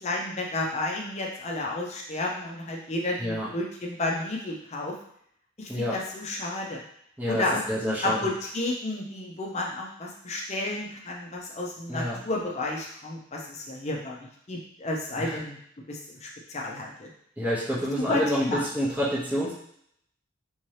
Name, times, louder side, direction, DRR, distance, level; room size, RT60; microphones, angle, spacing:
voice 1, 0.0-5.0 5.6-6.8 7.3-15.6 15.9-17.1 18.1-18.6, left 2 dB, 30° left, -1 dB, 0.6 m, -32 dB
voice 2, 7.7-8.2 11.9-12.2 15.2-15.3 17.4-19.5, equal, 10° right, -8 dB, 0.7 m, -28 dB
3.6 x 2.9 x 3.2 m, 0.69 s
head